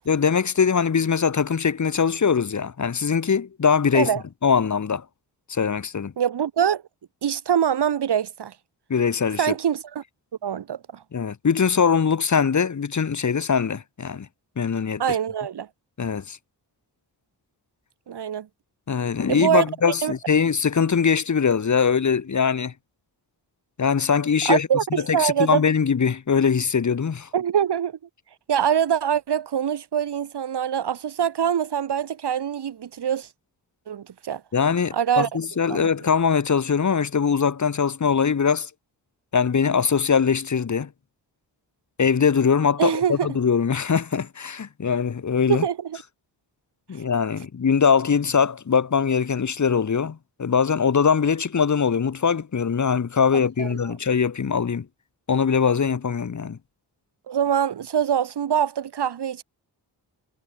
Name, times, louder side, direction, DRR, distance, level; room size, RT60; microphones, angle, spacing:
voice 1, 0.1-4.1 4.4-5.0 5.5-6.1 8.9-9.5 11.1-14.3 14.6-15.2 16.0-16.4 18.9-22.7 23.8-24.7 25.1-27.3 34.5-38.7 39.3-40.9 42.0-45.7 46.9-54.9 55.3-56.6, left 6 dB, 40° left, 2.4 m, -22 dB
voice 2, 6.2-6.8 7.2-8.5 9.4-10.0 10.4-11.0 15.0-15.7 18.1-18.5 19.3-19.6 20.0-20.1 24.4-25.6 27.3-28.0 28.5-33.3 33.9-34.4 34.9-35.3 35.7-35.9 42.8-43.3 45.5-46.0 53.6-53.9 57.3-59.4, right 8 dB, 65° right, 2.3 m, -24 dB
wide cardioid pair, 165°, 43 cm